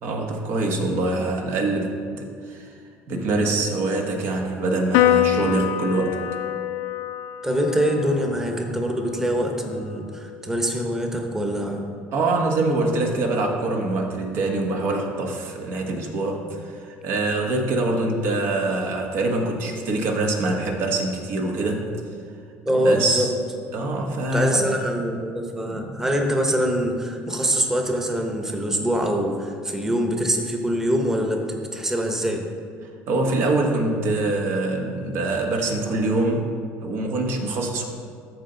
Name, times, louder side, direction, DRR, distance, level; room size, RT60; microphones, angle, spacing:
voice 1, 0.0-2.7 3.1-6.2 12.1-21.8 22.8-23.3 23.7-24.6 25.7-26.0 33.1-36.5 36.8-37.9, right 2 dB, 65° right, 2 dB, 1.4 m, -24 dB
Piano, 4.9-11.6, left 12 dB, 85° left, 0.4 m, -27 dB
voice 2, 7.4-11.9 22.6-23.3 24.3-32.5, equal, 10° right, 2 dB, 1.0 m, -24 dB
13.5 x 4.6 x 3.9 m, 2.2 s
cardioid pair, 115°, 5 cm